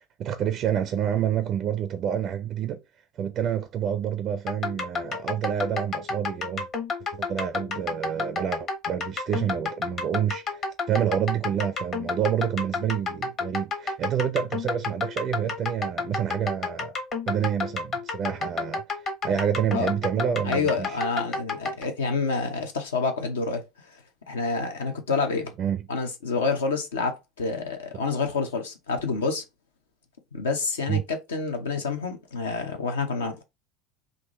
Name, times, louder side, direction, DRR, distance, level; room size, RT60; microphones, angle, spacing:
voice 1, 0.0-2.8 3.2-6.7 7.1-17.0 17.3-21.0 25.6-25.8 30.9-31.0, right 9 dB, 40° right, 0.4 m, -28 dB
sound 1, 4.5-21.8, left 4 dB, 40° left, 1.1 m, -31 dB
voice 2, 20.1-23.6 24.3-25.5 25.9-29.4 30.3-33.4, left 4 dB, 70° left, 0.7 m, -28 dB
3.7 x 2.6 x 3.0 m
figure-of-eight pair, 70°, 0 cm